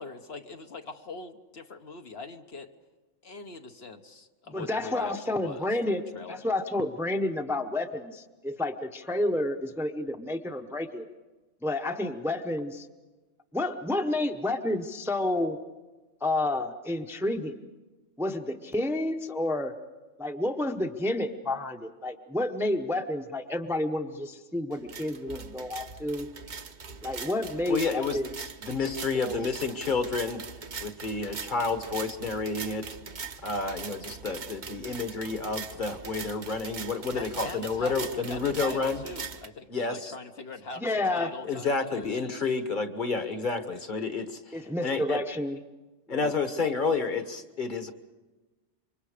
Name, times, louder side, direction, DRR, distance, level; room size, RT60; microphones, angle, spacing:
voice 1, 0.0-2.7 3.2-6.4 37.1-42.4, left 3 dB, 60° left, 5 dB, 1.2 m, -42 dB
voice 2, 4.5-6.0 6.3-11.1 11.6-12.9 13.5-15.6 16.2-17.6 18.2-19.7 20.2-26.3 27.0-28.3 29.1-29.5 40.8-41.3 44.5-45.6 46.1-46.3, left 1 dB, ahead, 5 dB, 0.8 m, -30 dB
sound 1, 24.7-39.5, right 5 dB, 45° right, 0.9 m, -41 dB
voice 3, 27.7-28.2 28.6-30.4 30.8-33.0 33.4-39.0 39.7-40.1 41.4-45.2 46.1-47.9, left 4 dB, 40° left, 8 dB, 1.4 m, -30 dB
27.5 x 24.5 x 5.0 m, 1.2 s
omnidirectional pair, 1.2 m